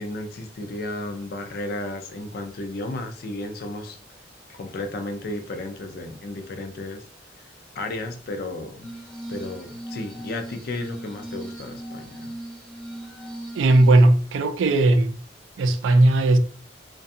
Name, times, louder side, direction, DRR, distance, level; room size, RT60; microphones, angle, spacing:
voice 1, 0.0-4.0 4.5-7.0 7.7-8.9 9.3-12.3, left 2 dB, 55° left, 0.4 m, -33 dB
Glass, 8.8-14.0, right 1 dB, 5° left, 0.6 m, -38 dB
voice 2, 13.5-15.2 15.6-16.4, right 2 dB, 85° right, 0.4 m, -17 dB
2.5 x 2.2 x 2.6 m
head